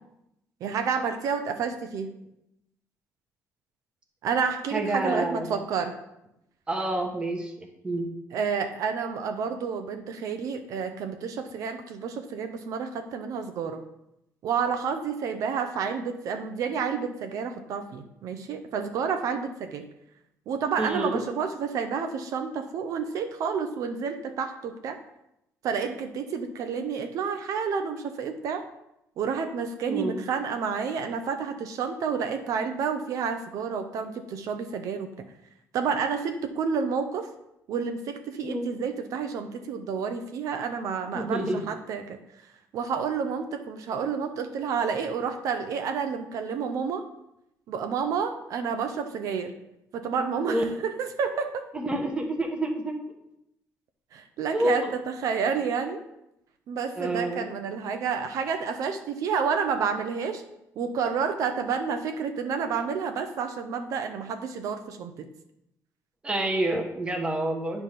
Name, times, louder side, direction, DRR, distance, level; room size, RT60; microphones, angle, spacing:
voice 1, 0.6-2.1 4.2-6.0 8.3-13.8 14.4-19.9 20.5-25.0 25.6-28.7 29.2-35.1 35.7-37.3 37.7-42.2 42.7-47.0 47.7-49.5 49.9-51.7 54.1-56.0 56.7-60.4 60.8-65.3, right 6 dB, 70° right, 7 dB, 0.7 m, -30 dB
voice 2, 4.7-5.6 6.7-7.5 7.8-8.1 20.8-21.2 29.8-30.2 38.4-38.8 41.1-41.6 50.4-50.6 51.7-52.9 54.5-54.9 57.0-57.5 66.2-67.8, right 1 dB, 15° right, 2 dB, 1.0 m, -28 dB
9.3 x 3.4 x 5.8 m, 0.84 s
cardioid pair, 155°, 6 cm